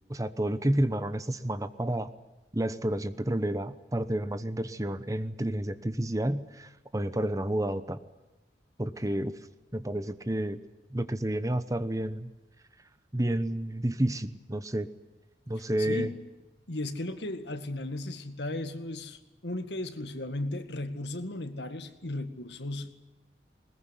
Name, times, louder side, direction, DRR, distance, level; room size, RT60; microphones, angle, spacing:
voice 1, 0.1-2.1 2.5-8.0 8.8-9.3 9.7-10.6 10.9-12.3 13.1-14.9 15.5-16.1, right 1 dB, 20° right, 1.0 m, -30 dB
voice 2, 15.8-16.2 16.7-22.9, left 1 dB, 80° left, 2.0 m, -36 dB
21.0 x 21.0 x 9.9 m
head